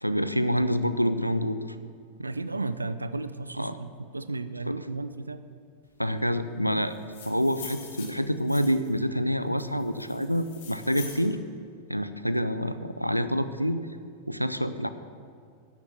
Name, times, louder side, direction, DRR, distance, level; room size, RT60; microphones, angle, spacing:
voice 1, 0.0-1.6 3.6-3.8 4.7-4.8 6.0-6.9 7.3-11.4 11.9-13.8 14.3-14.9, equal, 90° left, 11 dB, 0.5 m, -27 dB
voice 2, 2.2-5.5, right 2 dB, 80° right, 12 dB, 0.5 m, -34 dB
sound 1, 6.9-9.0 9.6-11.3, left 6 dB, 50° left, 1.9 m, -44 dB
11.0 x 7.1 x 7.6 m, 2.2 s
figure-of-eight pair, 90°, 0 cm